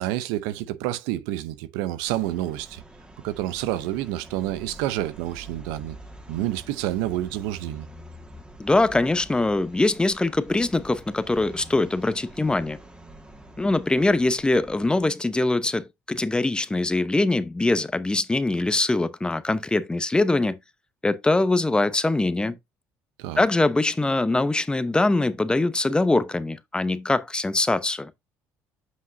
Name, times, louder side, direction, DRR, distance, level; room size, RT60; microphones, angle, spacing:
voice 1, 0.0-2.8 3.2-6.0 6.3-7.9 23.2-23.4, right 14 dB, 85° right, 0.6 m, -28 dB
sound 1, 2.0-15.1, right 1 dB, 15° right, 1.9 m, -46 dB
voice 2, 8.6-12.8 13.6-20.6 21.0-22.6 23.4-28.1, left 2 dB, 15° left, 0.8 m, -23 dB
7.7 x 5.7 x 2.6 m
supercardioid pair, 80°, 7 cm